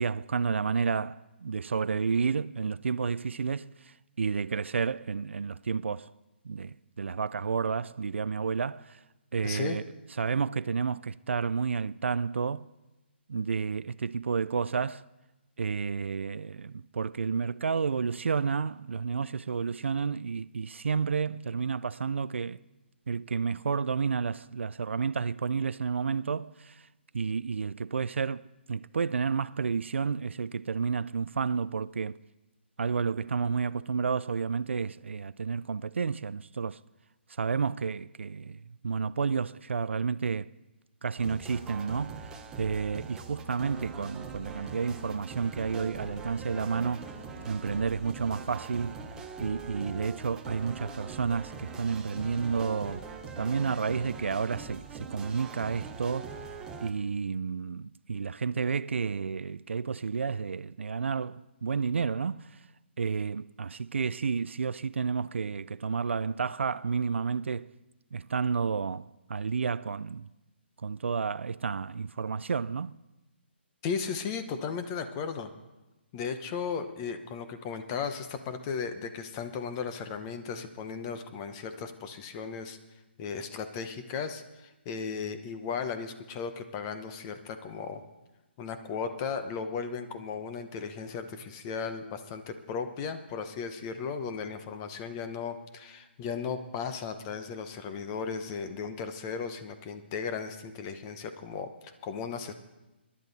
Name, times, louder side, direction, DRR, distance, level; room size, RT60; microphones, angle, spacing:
voice 1, 0.0-6.1 6.4-9.0 9.3-9.8 10.2-12.7 13.3-15.0 15.6-22.6 23.1-26.9 27.1-32.2 32.8-36.8 37.3-40.5 41.0-47.1 47.4-49.0 49.4-53.1 53.4-56.5 56.8-62.7 63.0-67.7 68.1-70.3 70.8-73.0, right 5 dB, 90° right, 0.4 m, -31 dB
voice 2, 9.4-9.8 73.8-75.5 76.1-82.8 83.2-88.0 88.6-102.5, left 6 dB, 20° left, 0.8 m, -36 dB
sound 1, 41.2-56.9, right 5 dB, 10° right, 0.8 m, -42 dB
23.0 x 11.0 x 4.1 m
hypercardioid pair, 165°, 6 cm